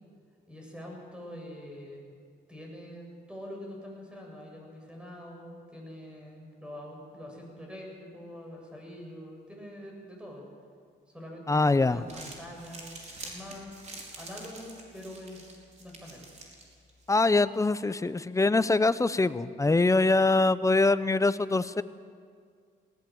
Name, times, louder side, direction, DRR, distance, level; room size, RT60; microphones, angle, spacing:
voice 1, 0.5-2.1 2.5-10.5 11.1-13.9 14.1-15.4 15.8-16.3, equal, 5° right, 0 dB, 7.6 m, -44 dB
voice 2, 11.5-12.0 17.1-21.8, left 3 dB, 15° left, 14 dB, 0.7 m, -24 dB
Crumpling crinkling, 11.9-17.1, right 2 dB, 35° right, 4.9 m, -47 dB
20.0 x 18.0 x 7.9 m, 2.1 s
cardioid pair, 90°, 20 cm